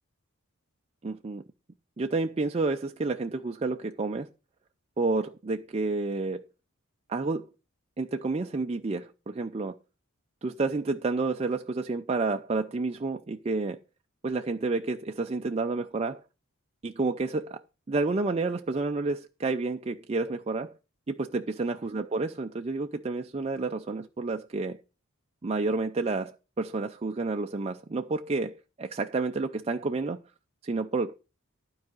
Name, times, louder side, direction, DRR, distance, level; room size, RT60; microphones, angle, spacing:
voice 1, 1.0-1.4 2.0-4.3 5.0-6.4 7.1-7.5 8.0-9.8 10.4-13.8 14.2-16.2 16.8-17.6 17.9-20.7 21.1-24.8 25.4-30.2 30.6-31.2, right 3 dB, 30° right, 0.4 m, -30 dB
12.0 x 4.8 x 7.7 m
head